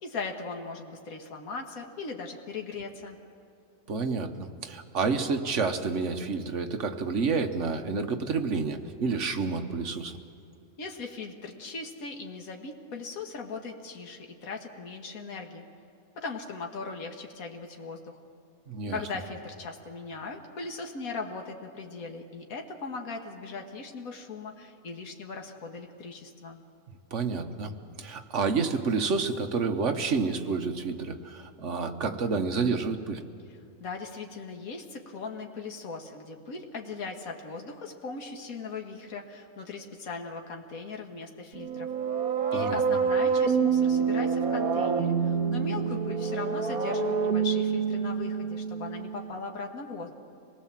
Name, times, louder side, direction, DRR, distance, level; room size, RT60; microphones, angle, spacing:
voice 1, 0.0-3.2 10.8-15.7 16.2-18.2 18.9-26.6 33.8-41.9 42.5-50.1, left 4 dB, 75° left, 2 dB, 2.0 m, -39 dB
voice 2, 3.9-10.1 18.7-19.0 27.1-27.7 28.0-33.2 42.5-42.8, right 4 dB, 55° right, 6 dB, 1.4 m, -29 dB
sound 1, 41.5-49.3, right 6 dB, 75° right, 1.9 m, -27 dB
25.5 x 19.5 x 7.4 m, 2.6 s
omnidirectional pair, 1.5 m